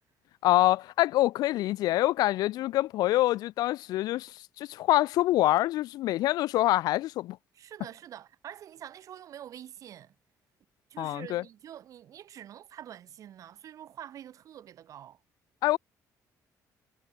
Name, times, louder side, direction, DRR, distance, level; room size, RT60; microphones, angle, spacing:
voice 1, 0.4-7.4 11.0-11.4 15.6-15.8, left 16 dB, 75° left, 0.4 m, -25 dB
voice 2, 7.5-10.1 10.9-15.2, right 10 dB, 55° right, 4.1 m, -46 dB
cardioid pair, 140°, 7 cm